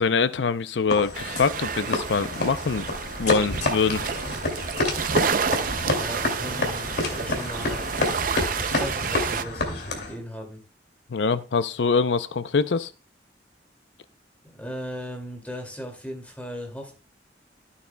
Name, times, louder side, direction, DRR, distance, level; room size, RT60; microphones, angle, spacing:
voice 1, 0.0-2.9 3.2-4.2 11.1-12.9, left 5 dB, 85° left, 0.6 m, -24 dB
sound 1, 0.9-10.2, left 2 dB, 65° left, 2.5 m, -29 dB
sound 2, 1.1-9.4, right 6 dB, 50° right, 0.5 m, -30 dB
voice 2, 5.9-7.9 8.6-10.6 14.5-16.9, equal, 10° left, 2.4 m, -37 dB
13.5 x 8.4 x 2.2 m
head